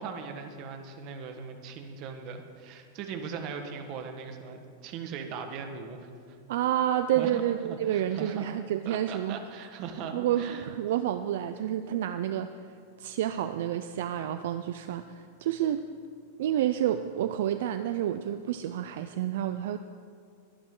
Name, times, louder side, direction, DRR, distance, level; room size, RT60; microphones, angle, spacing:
voice 1, 0.0-6.1 7.1-8.4 8.8-10.6, right 6 dB, 40° right, 6 dB, 1.5 m, -39 dB
voice 2, 6.5-9.4 10.1-12.5 13.0-15.9 16.4-19.8, right 11 dB, 70° right, 10 dB, 0.5 m, -29 dB
22.0 x 10.5 x 3.9 m, 2.3 s
supercardioid pair, 150°, 0 cm